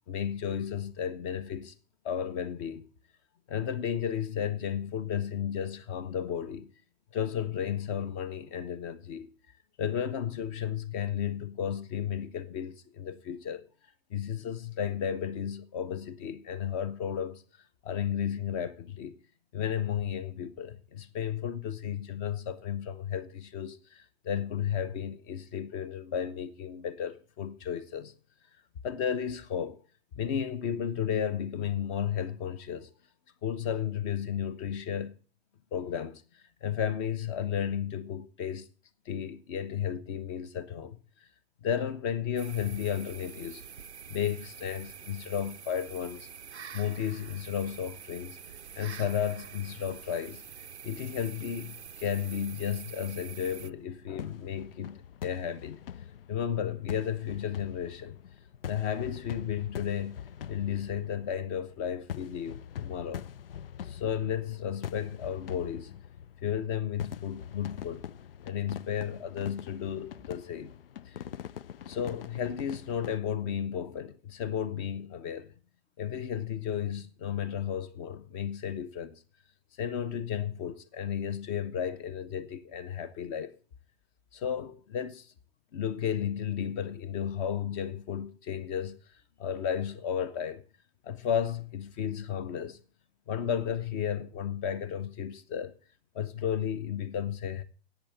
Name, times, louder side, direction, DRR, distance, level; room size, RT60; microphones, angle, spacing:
voice 1, 0.1-1.7 2.0-2.9 3.5-6.7 7.1-9.3 9.8-13.6 14.1-17.4 17.8-19.2 19.5-28.1 28.8-29.8 30.1-32.9 33.4-35.1 35.7-38.7 39.1-41.0 41.6-43.6 44.1-46.3 46.7-48.4 48.8-55.8 56.3-58.2 58.7-60.2 60.5-63.3 63.8-65.9 66.4-68.0 68.4-70.7 71.0-71.2 71.9-75.5 76.0-79.2 79.8-83.5 84.3-85.3 85.7-89.0 89.4-90.6 91.0-92.8 93.3-95.7 96.1-97.6, left 8 dB, 30° left, 0.9 m, -33 dB
sound 1, 42.4-53.7, right 7 dB, 85° right, 0.6 m, -46 dB
sound 2, 53.4-73.2, left 9 dB, 60° left, 0.5 m, -44 dB
10.5 x 8.3 x 7.8 m
figure-of-eight pair, 115°, 32 cm